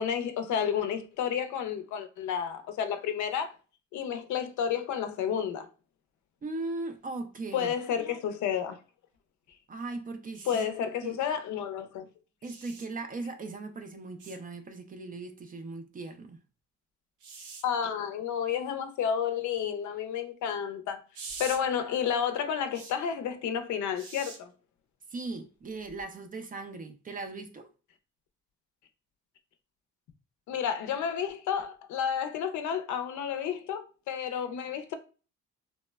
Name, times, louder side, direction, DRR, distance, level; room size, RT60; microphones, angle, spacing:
voice 1, 0.0-3.5 3.9-5.7 7.5-8.8 10.5-12.1 17.6-21.0 21.4-24.5 30.5-34.9, left 8 dB, 70° left, 0.5 m, -31 dB
voice 2, 6.4-7.7 9.7-10.7 11.0-11.2 12.4-16.4 25.1-27.7, right 3 dB, 30° right, 0.4 m, -38 dB
sound 1, 10.3-10.7 12.4-12.9 14.2-14.4 17.2-17.6 21.1-21.6 22.7-22.9 24.0-24.4 25.9-26.0, right 4 dB, 90° right, 0.7 m, -43 dB
3.0 x 2.0 x 2.2 m
cardioid pair, 90°, 30 cm